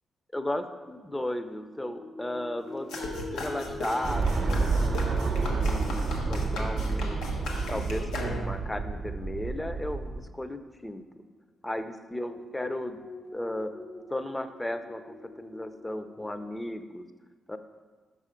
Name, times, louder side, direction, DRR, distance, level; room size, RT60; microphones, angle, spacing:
voice 1, 0.3-2.9 3.3-7.2 7.7-11.0 11.6-13.0 13.3-13.7 14.1-17.1 17.5-17.6, left 1 dB, 15° left, 9 dB, 0.5 m, -35 dB
sound 1, 1.8-11.0 12.0-16.5, left 3 dB, 60° left, 1.1 m, -46 dB
sound 2, 2.9-8.7, left 1 dB, 90° left, 1.1 m, -37 dB
sound 3, 4.0-10.3, right 4 dB, 45° right, 0.5 m, -29 dB
5.7 x 5.5 x 5.0 m, 1.4 s
cardioid pair, 70°, 0 cm